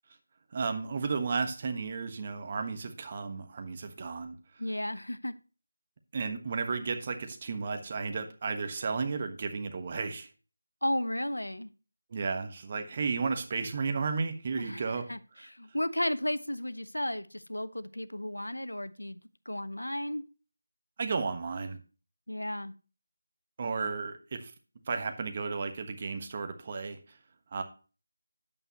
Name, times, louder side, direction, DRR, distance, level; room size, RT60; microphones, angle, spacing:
voice 1, 0.5-4.4 6.1-10.3 12.1-15.0 21.0-21.8 23.6-24.4 24.9-27.0 27.5-27.6, right 4 dB, 30° right, 7 dB, 1.3 m, -33 dB
voice 2, 4.6-5.3 10.8-11.7 14.6-20.2 22.3-22.7, left 1 dB, 85° left, 15 dB, 0.8 m, -34 dB
9.4 x 8.6 x 3.0 m, 0.35 s
figure-of-eight pair, 165°, 0 cm